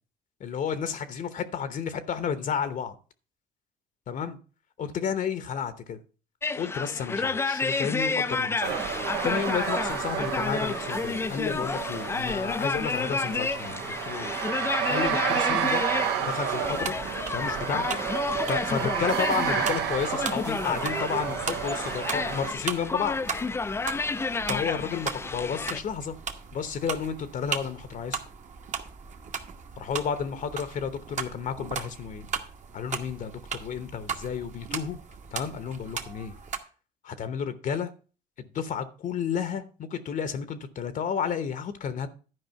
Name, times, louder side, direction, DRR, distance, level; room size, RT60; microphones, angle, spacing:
voice 1, 0.4-2.9 4.1-4.4 4.8-6.0 6.5-8.8 9.2-14.3 14.9-15.8 16.2-16.9 17.3-18.0 18.5-23.2 24.5-26.1 26.5-28.2 29.8-32.3 32.7-35.0 35.3-36.3 37.0-37.9 38.5-42.1, left 7 dB, 50° left, 12 dB, 0.9 m, -31 dB
sound 1, 6.4-25.8, left 4 dB, 15° left, 0.4 m, -31 dB
sound 2, 8.6-22.5, right 9 dB, 90° right, 1.2 m, -31 dB
sound 3, 16.6-36.6, right 6 dB, 45° right, 1.2 m, -38 dB
11.0 x 4.9 x 5.7 m, 0.37 s
cardioid pair, 110°, 17 cm